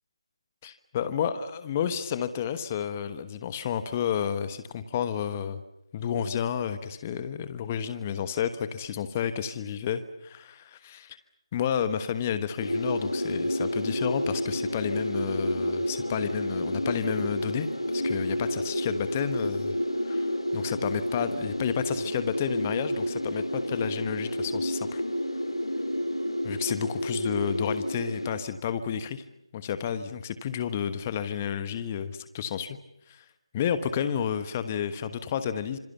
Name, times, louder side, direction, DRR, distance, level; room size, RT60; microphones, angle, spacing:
voice 1, 0.6-5.6 5.9-11.2 11.5-17.7 17.9-19.8 20.0-25.0 26.4-29.2 29.5-32.8 33.1-33.2 33.5-35.8, left 8 dB, 20° left, 11 dB, 1.2 m, -31 dB
sound 1, 12.6-28.3, equal, 90° left, 5.0 m, -30 dB
26.5 x 26.5 x 7.1 m, 0.83 s
figure-of-eight pair, 160°, 3 cm